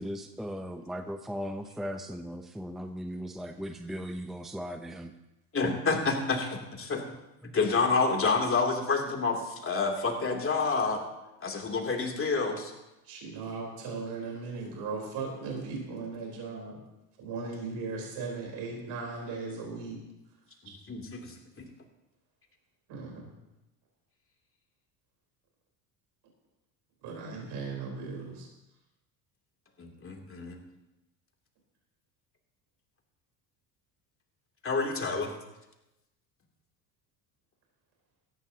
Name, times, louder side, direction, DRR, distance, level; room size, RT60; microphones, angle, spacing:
voice 1, 0.0-5.1 7.4-7.6, equal, ahead, 6 dB, 0.8 m, -38 dB
voice 2, 5.5-7.0 7.5-11.0 11.4-12.7 20.9-21.6 29.8-30.6 34.6-35.3, left 4 dB, 30° left, 1 dB, 3.0 m, -28 dB
voice 3, 13.0-16.8 17.2-20.0 22.9-23.3 27.0-28.5, right 4 dB, 60° right, -1 dB, 4.2 m, -37 dB
18.0 x 14.0 x 2.9 m, 0.95 s
hypercardioid pair, 75°, 45 cm